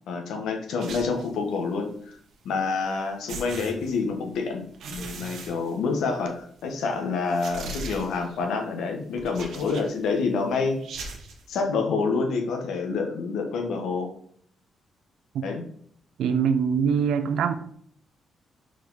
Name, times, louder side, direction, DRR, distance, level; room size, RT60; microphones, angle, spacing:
voice 1, 0.1-2.2 2.4-10.8 11.5-14.1 15.4-15.6, left 4 dB, 85° left, 4 dB, 1.2 m, -27 dB
sound 1, 0.8-1.4 2.8-2.9 3.3-4.3 4.7-6.3 6.6-6.7 7.3-8.4 9.2-10.1 10.8-11.4, right 3 dB, 70° right, 1.1 m, -39 dB
voice 2, 16.2-17.5, right 7 dB, 85° right, 10 dB, 0.6 m, -23 dB
5.0 x 4.7 x 4.0 m, 0.62 s
cardioid pair, 145°, 0 cm